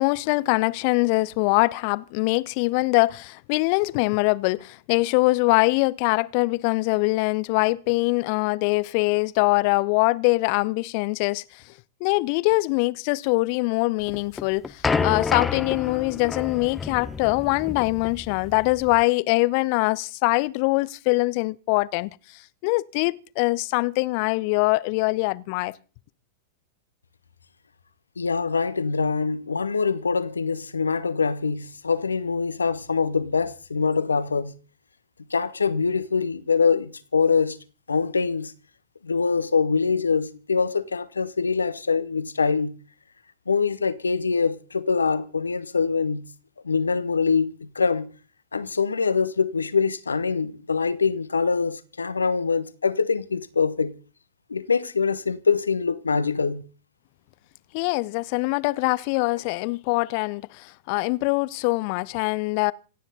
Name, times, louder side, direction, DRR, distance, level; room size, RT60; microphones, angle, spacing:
voice 1, 0.0-11.6 12.0-25.7 57.7-62.7, left 24 dB, 45° left, 0.7 m, -23 dB
sound 1, 14.1-19.0, left 5 dB, 15° left, 1.0 m, -29 dB
voice 2, 28.2-34.5 35.3-37.6 37.9-38.5 39.0-42.7 43.5-46.3 46.6-48.1 48.5-53.9 54.5-56.6, left 5 dB, 75° left, 1.2 m, -24 dB
27.0 x 9.5 x 4.1 m
figure-of-eight pair, 95°, 0 cm